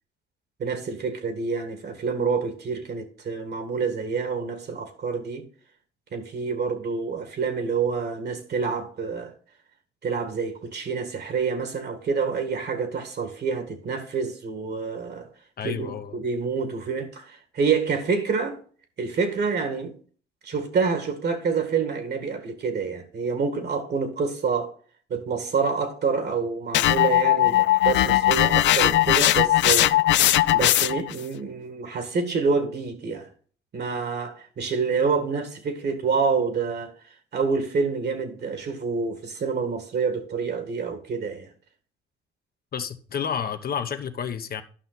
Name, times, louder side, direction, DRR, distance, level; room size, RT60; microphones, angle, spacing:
voice 1, 0.6-5.5 6.1-9.3 10.0-15.3 15.6-18.6 19.0-19.9 20.4-24.7 25.1-29.9 30.5-33.3 33.7-36.9 37.3-41.5, right 5 dB, 55° right, 2.0 m, -27 dB
voice 2, 15.6-16.2 42.7-44.6, left 7 dB, 50° left, 0.9 m, -30 dB
sound 1, 26.7-31.1, left 14 dB, 65° left, 0.4 m, -19 dB
11.0 x 5.8 x 4.1 m
cardioid pair, 90°, 20 cm